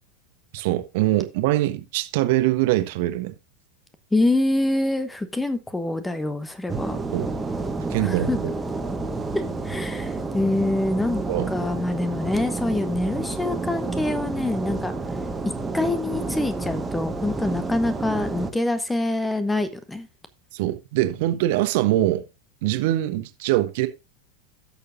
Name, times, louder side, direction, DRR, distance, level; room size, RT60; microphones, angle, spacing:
voice 1, 0.5-3.3 7.1-7.3 7.9-8.4 11.3-11.5 20.5-22.2 22.6-23.9, right 15 dB, 55° right, 1.2 m, -23 dB
voice 2, 4.1-7.0 8.0-8.5 9.3-11.2 11.5-14.9 15.7-20.1, left 2 dB, 10° left, 1.0 m, -25 dB
sound 1, 6.7-18.5, right 3 dB, 10° right, 1.5 m, -30 dB
16.0 x 6.8 x 2.6 m
figure-of-eight pair, 85°, 0 cm